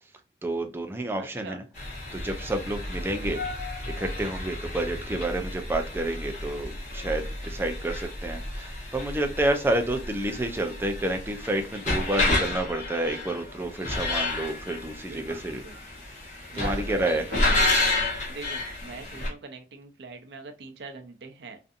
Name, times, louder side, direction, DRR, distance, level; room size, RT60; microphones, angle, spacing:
voice 1, 0.4-1.6 2.1-3.4 4.0-15.6 16.2-16.3 16.5-17.3, right 1 dB, 15° right, 5 dB, 0.3 m, -29 dB
voice 2, 1.2-1.6 15.1-15.8 16.5-17.8 18.3-21.6, right 3 dB, 80° right, 6 dB, 0.5 m, -42 dB
sound 1, 1.7-19.3, left 2 dB, 45° left, 0.8 m, -31 dB
2.6 x 2.5 x 2.4 m, 0.34 s
head